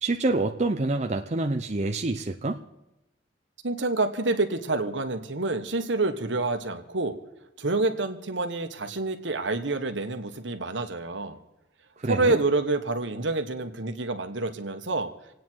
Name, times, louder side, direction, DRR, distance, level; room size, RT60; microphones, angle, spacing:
voice 1, 0.0-2.6 12.0-12.4, right 2 dB, 35° right, 4 dB, 0.7 m, -27 dB
voice 2, 3.6-7.2 7.6-11.4 12.1-15.1, right 2 dB, 70° right, 6 dB, 1.4 m, -27 dB
27.0 x 9.3 x 4.6 m, 0.94 s
head